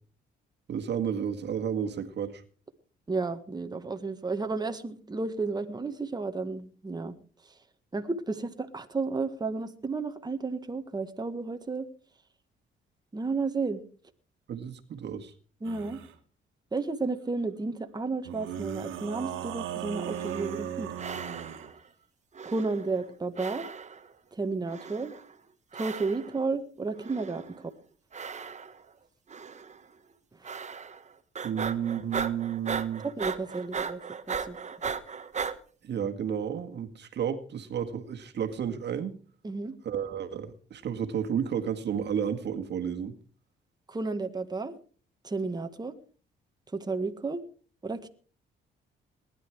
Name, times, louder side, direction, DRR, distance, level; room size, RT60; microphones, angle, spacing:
voice 1, 0.7-2.4 14.5-15.3 31.4-33.1 35.8-39.2 39.8-43.2, right 8 dB, 60° right, 7 dB, 1.9 m, -32 dB
voice 2, 3.1-7.2 7.9-11.9 13.1-13.8 15.6-16.0 16.7-20.9 22.5-23.7 24.3-25.1 25.7-27.4 30.4-30.5 33.2-34.0 34.3-34.6 39.4-39.7 43.9-44.7 45.2-45.9 46.7-47.4 47.8-48.1, right 3 dB, 20° right, 7 dB, 1.7 m, -32 dB
sound 1, 15.6-16.1 18.3-21.7, right 10 dB, 90° right, 1.9 m, -37 dB
sound 2, 20.0-20.7 21.0-21.8 22.3-23.1 23.4-24.1 24.7-25.3 25.7-26.4 27.0-27.6 28.1-28.9 29.3-29.8 30.4-31.1 31.3-35.6, right 6 dB, 35° right, 1.4 m, -37 dB
19.5 x 11.5 x 4.8 m, 0.41 s
cardioid pair, 90°, 20 cm